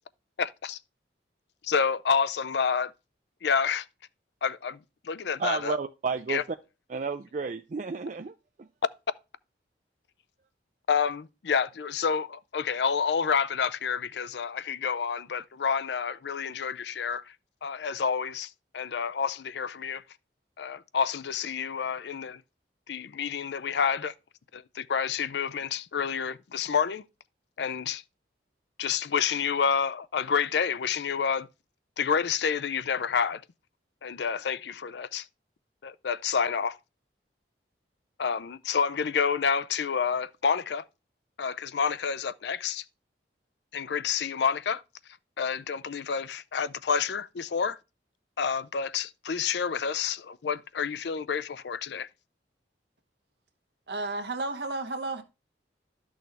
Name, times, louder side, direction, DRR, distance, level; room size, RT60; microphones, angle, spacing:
voice 1, 0.4-0.8 1.6-2.9 3.4-3.8 4.4-4.8 5.0-5.8 6.3-6.4 10.9-17.3 17.6-20.0 20.6-22.4 22.9-24.1 24.5-27.0 27.6-28.0 28.8-31.5 32.0-33.4 34.0-35.3 35.8-36.8 38.2-40.8 41.4-42.8 43.7-44.8 45.4-47.8 48.4-52.1, left 6 dB, 70° left, 0.5 m, -29 dB
voice 2, 5.4-6.6 6.9-8.3 8.6-8.7, right 4 dB, 45° right, 0.4 m, -32 dB
voice 3, 53.9-55.2, right 2 dB, 70° right, 1.2 m, -32 dB
12.0 x 6.3 x 3.4 m
head